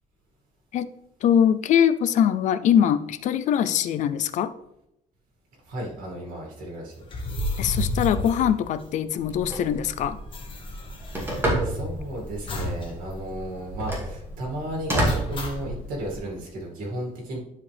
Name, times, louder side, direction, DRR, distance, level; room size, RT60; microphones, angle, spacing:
voice 1, 1.2-4.5 7.6-10.2, left 9 dB, 60° left, 13 dB, 0.5 m, -22 dB
voice 2, 5.7-6.9 11.6-17.4, right 1 dB, 90° right, -2 dB, 2.3 m, -33 dB
sound 1, 7.0-9.3 9.6-9.7 9.9-12.0 12.5-12.9 13.2-13.3 13.7-14.1 15.1-15.8, left 1 dB, 40° left, 1.5 m, -32 dB
Telephone, 9.2-16.2, right 1 dB, 15° right, 2.2 m, -31 dB
11.0 x 4.9 x 3.4 m, 0.83 s
cardioid pair, 150°, 14 cm